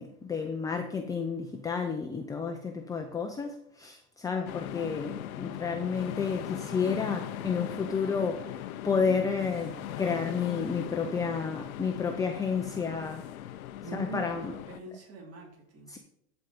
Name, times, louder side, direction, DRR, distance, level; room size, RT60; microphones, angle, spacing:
voice 1, 0.0-13.3 13.9-14.5 15.9-16.0, left 5 dB, 10° left, 4 dB, 0.5 m, -31 dB
sound 1, 4.5-14.8, left 12 dB, 90° left, 0.7 m, -40 dB
Laughter, 5.2-11.5, right 5 dB, 75° right, 1.7 m, -52 dB
sound 2, 7.9-9.5 10.0-14.3, left 9 dB, 60° left, 1.1 m, -50 dB
voice 2, 13.8-15.9, right 5 dB, 35° right, -1 dB, 3.4 m, -42 dB
13.0 x 4.6 x 5.3 m, 0.75 s
supercardioid pair, 130°, 41 cm